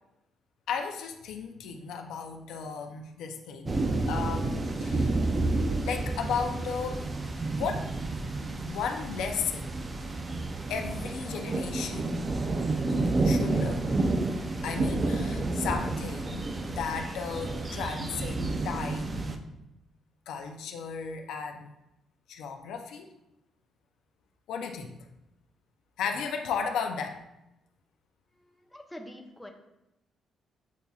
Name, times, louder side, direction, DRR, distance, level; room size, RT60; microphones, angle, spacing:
voice 1, 0.7-3.8 4.1-5.2 5.8-7.1 7.5-7.9 8.6-9.7 10.7-12.4 13.2-13.8 14.6-19.4 20.3-21.7 22.3-23.1 24.5-25.0 26.0-27.2, left 6 dB, 85° left, 4 dB, 0.4 m, -35 dB
sound 1, 3.6-19.4, right 2 dB, 30° right, 0.5 m, -30 dB
voice 2, 28.3-29.5, equal, 5° left, 2 dB, 0.7 m, -46 dB
8.2 x 2.7 x 2.3 m, 0.90 s
cardioid pair, 90°, 0 cm